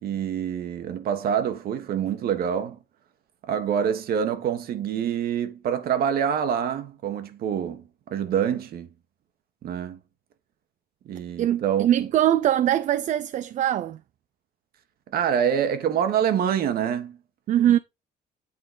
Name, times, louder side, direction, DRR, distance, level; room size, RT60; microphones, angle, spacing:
voice 1, 0.0-2.8 3.5-8.9 9.6-10.0 11.0-11.9 15.1-17.2 17.6-17.8, right 8 dB, 65° right, 1.3 m, -26 dB
voice 2, 11.4-14.0 17.5-17.8, right 11 dB, 45° right, 0.4 m, -22 dB
8.8 x 3.8 x 3.9 m
cardioid pair, 110°, 17 cm